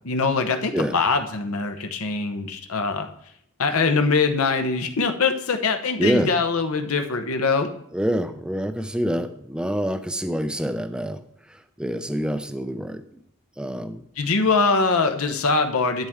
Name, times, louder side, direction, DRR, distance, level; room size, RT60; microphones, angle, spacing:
voice 1, 0.0-3.1 3.6-7.7 14.2-16.1, left 4 dB, 75° left, 6 dB, 0.9 m, -23 dB
voice 2, 6.0-6.3 7.9-11.2 11.5-13.0 13.6-14.0, equal, 5° right, 9 dB, 0.5 m, -26 dB
11.5 x 7.5 x 3.6 m, 0.71 s
head